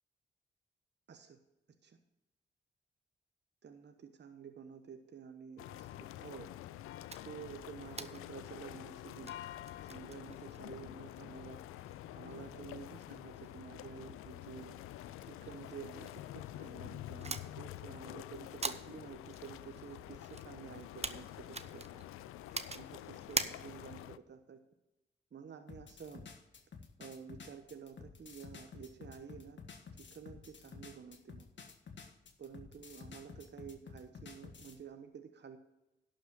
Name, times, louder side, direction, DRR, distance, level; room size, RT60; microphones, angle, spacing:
voice 1, 1.1-1.4 1.8-2.0 3.6-6.5 7.2-9.5 9.8-11.6 12.1-14.8 15.2-22.1 22.7-24.6 25.3-26.2 27.0-29.6 30.1-31.5 32.4-35.6, right 7 dB, 55° right, 6 dB, 1.1 m, -51 dB
sound 1, 5.6-24.2, left 13 dB, 85° left, 0.4 m, -48 dB
sound 2, 7.1-24.1, right 4 dB, 30° right, 0.9 m, -46 dB
sound 3, 25.7-34.8, left 5 dB, 60° left, 1.5 m, -52 dB
11.5 x 5.2 x 7.3 m, 0.97 s
supercardioid pair, 40°, 21 cm